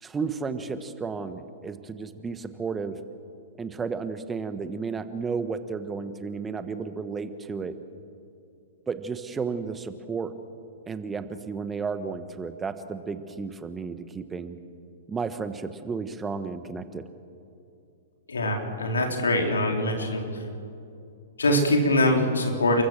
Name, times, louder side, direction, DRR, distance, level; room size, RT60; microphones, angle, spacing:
voice 1, 0.0-3.0 3.6-7.7 8.9-10.3 10.9-14.6 15.1-17.0, right 5 dB, 15° right, 10 dB, 1.3 m, -33 dB
voice 2, 18.3-20.2 21.4-22.8, left 1 dB, 85° left, 2 dB, 4.1 m, -23 dB
30.0 x 14.5 x 7.6 m, 2.6 s
hypercardioid pair, 115°, 0 cm